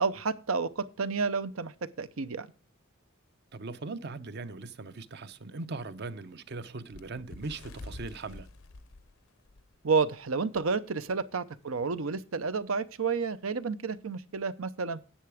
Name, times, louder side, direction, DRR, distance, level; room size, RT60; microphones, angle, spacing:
voice 1, 0.0-2.5 9.8-15.0, right 4 dB, 85° right, 0.7 m, -30 dB
voice 2, 3.5-8.5, right 3 dB, 55° right, 0.7 m, -40 dB
Bird, 6.9-10.1 10.5-10.7 11.0-11.2 12.0-12.1, left 2 dB, 75° left, 0.7 m, -47 dB
10.0 x 7.8 x 4.9 m
head